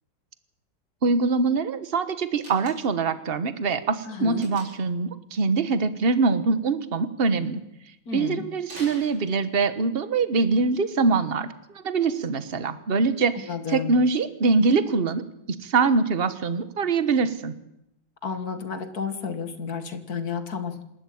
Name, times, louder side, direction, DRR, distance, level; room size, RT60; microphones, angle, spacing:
voice 1, 1.0-7.6 8.1-15.2 15.6-17.5, right 4 dB, 35° right, 12 dB, 1.3 m, -23 dB
Slam, 2.4-3.1 4.4-5.0 8.6-9.7, right 1 dB, 80° right, 7.0 m, -44 dB
voice 2, 4.1-4.5 8.1-8.4 13.5-14.0 18.2-20.9, left 5 dB, 50° left, 10 dB, 2.2 m, -31 dB
27.5 x 12.5 x 8.7 m, 0.84 s
omnidirectional pair, 2.1 m